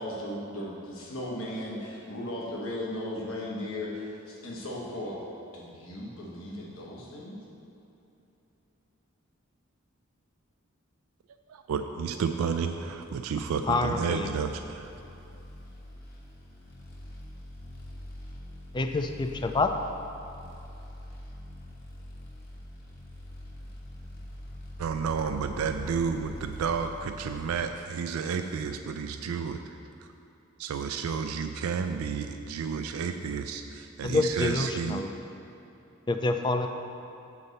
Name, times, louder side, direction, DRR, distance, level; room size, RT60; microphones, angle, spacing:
voice 1, 0.0-5.2 5.5-7.4, left 1 dB, 75° left, -4 dB, 1.2 m, -36 dB
voice 2, 11.5-14.9 24.8-30.1 30.6-35.0, right 6 dB, 90° right, 7 dB, 0.3 m, -31 dB
voice 3, 13.7-14.3 18.7-19.7 34.0-35.1 36.1-36.7, left 3 dB, 20° left, 6 dB, 0.3 m, -27 dB
sound 1, 13.8-27.6, left 1 dB, 45° left, 1.1 m, -44 dB
7.1 x 4.1 x 6.6 m, 2.9 s
head